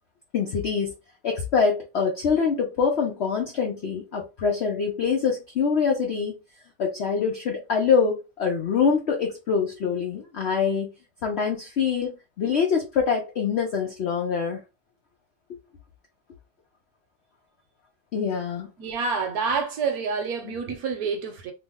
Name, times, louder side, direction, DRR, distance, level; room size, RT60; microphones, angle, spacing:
voice 1, 0.3-0.9 1.2-6.4 6.8-10.9 11.2-14.6 15.5-15.6 18.1-18.7, left 6 dB, 70° left, 0.6 m, -24 dB
voice 2, 18.8-21.5, right 5 dB, 65° right, 1.1 m, -28 dB
3.0 x 2.1 x 3.4 m
omnidirectional pair, 1.8 m